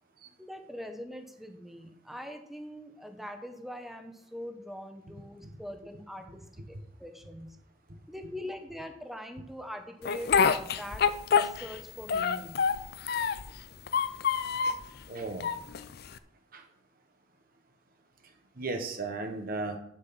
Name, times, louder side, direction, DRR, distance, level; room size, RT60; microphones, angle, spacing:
voice 1, 0.4-7.6 8.1-12.6, equal, ahead, 5 dB, 1.1 m, -43 dB
Speech, 10.1-11.8 12.1-13.5 13.9-14.9 15.4-16.2, left 6 dB, 55° left, 0.5 m, -26 dB
voice 2, 15.1-15.5 16.5-16.6 18.6-19.8, right 3 dB, 50° right, 4 dB, 1.2 m, -35 dB
9.0 x 7.2 x 5.8 m, 0.74 s
head